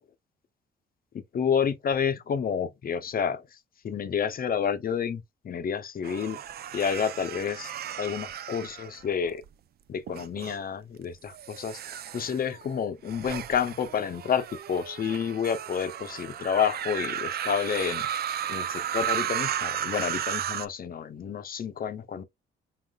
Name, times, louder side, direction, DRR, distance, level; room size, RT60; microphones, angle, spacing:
voice 1, 1.3-3.4 3.8-6.4 6.7-7.7 8.0-9.4 9.9-18.1 18.5-22.2, left 7 dB, 45° left, 0.7 m, -29 dB
sound 1, 6.0-9.5 10.1-10.6 11.3-20.7, right 10 dB, 55° right, 0.4 m, -34 dB
4.2 x 3.9 x 2.3 m
cardioid pair, 90°, 20 cm